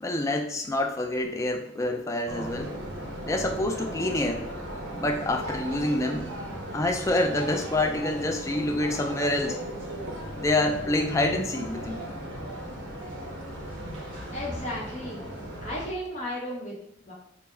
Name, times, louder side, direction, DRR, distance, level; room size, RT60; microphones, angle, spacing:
voice 1, 0.0-2.7 3.2-4.5 5.0-6.4 6.7-9.6 10.4-12.0, left 1 dB, 15° left, 4 dB, 0.3 m, -27 dB
sound 1, 2.3-15.9, right 1 dB, 75° right, 0.7 m, -37 dB
voice 2, 14.0-15.2 15.6-17.1, left 1 dB, 35° left, -3 dB, 0.8 m, -35 dB
3.6 x 2.0 x 4.3 m, 0.74 s
head